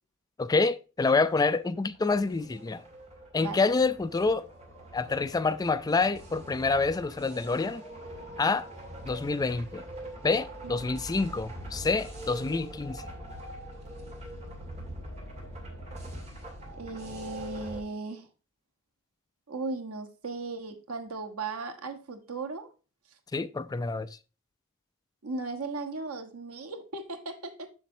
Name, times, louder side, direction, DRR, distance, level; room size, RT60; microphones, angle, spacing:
voice 1, 0.4-2.8 3.3-4.5 4.9-7.8 8.4-8.7 9.0-9.9 10.2-13.0 23.3-24.2, left 3 dB, 15° left, 0.3 m, -27 dB
sound 1, 1.7-17.8, right 1 dB, 30° right, 2.1 m, -43 dB
voice 2, 16.8-18.3 19.5-22.7 25.2-27.7, right 3 dB, 80° right, 1.2 m, -37 dB
7.1 x 6.8 x 2.7 m
head